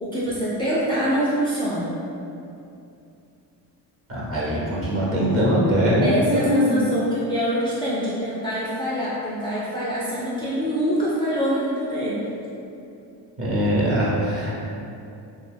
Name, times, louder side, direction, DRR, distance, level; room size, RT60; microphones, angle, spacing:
voice 1, 0.0-1.9 6.0-12.2, equal, 10° left, -9 dB, 0.3 m, -25 dB
voice 2, 4.1-6.9 13.4-14.6, equal, 30° right, -6 dB, 0.6 m, -21 dB
2.3 x 2.2 x 3.3 m, 2.7 s
cardioid pair, 90°, 44 cm